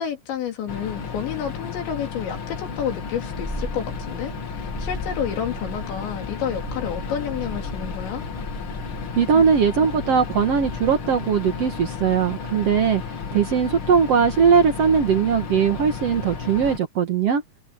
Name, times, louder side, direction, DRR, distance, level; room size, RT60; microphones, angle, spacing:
voice 1, 0.0-8.2 9.3-9.4, left 8 dB, 75° left, 5.2 m, -30 dB
sound 1, 0.7-16.8, left 6 dB, 50° left, 1.6 m, -33 dB
Purr, 3.2-11.3, right 1 dB, 5° right, 7.7 m, -37 dB
voice 2, 9.1-13.0 13.3-17.4, right 6 dB, 80° right, 1.4 m, -20 dB
omnidirectional pair, 5.2 m